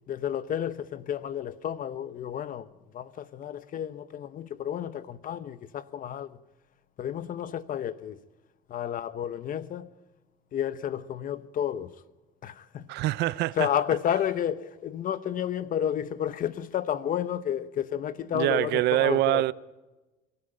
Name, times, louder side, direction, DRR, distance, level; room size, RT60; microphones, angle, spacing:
voice 1, 0.1-2.7 2.9-6.4 7.0-8.2 8.7-9.9 10.5-12.0 12.4-12.9 13.6-19.4, left 10 dB, 55° left, 0.9 m, -31 dB
voice 2, 12.9-13.7 18.3-19.5, right 17 dB, 80° right, 0.6 m, -25 dB
25.5 x 14.0 x 9.0 m
cardioid pair, 110°, 17 cm